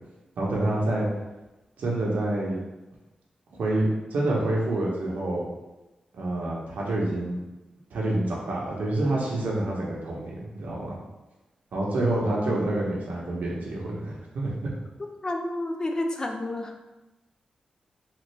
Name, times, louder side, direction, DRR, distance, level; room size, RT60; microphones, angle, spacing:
voice 1, 0.4-1.1 1.8-2.6 3.6-5.5 6.1-7.4 7.9-11.0 11.7-14.7, right 1 dB, 80° right, -4 dB, 0.9 m, -27 dB
voice 2, 12.3-12.8 15.2-16.8, left 1 dB, 25° left, 4 dB, 0.3 m, -30 dB
3.3 x 2.5 x 3.2 m, 1.0 s
wide cardioid pair, 105°, 3 cm